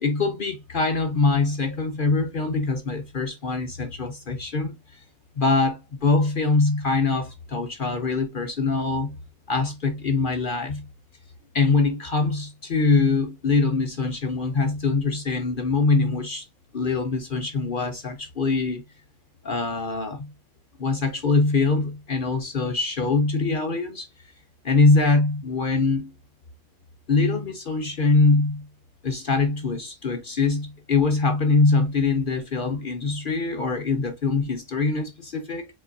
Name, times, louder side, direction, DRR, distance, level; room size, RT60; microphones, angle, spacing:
voice 1, 0.0-5.0 5.4-9.2 9.5-10.9 11.5-16.5 16.7-18.8 19.4-20.3 20.8-24.1 24.6-26.1 27.1-28.7 29.0-35.7, left 3 dB, 55° left, 0.6 m, -23 dB
5.2 x 3.9 x 2.6 m
omnidirectional pair, 1.6 m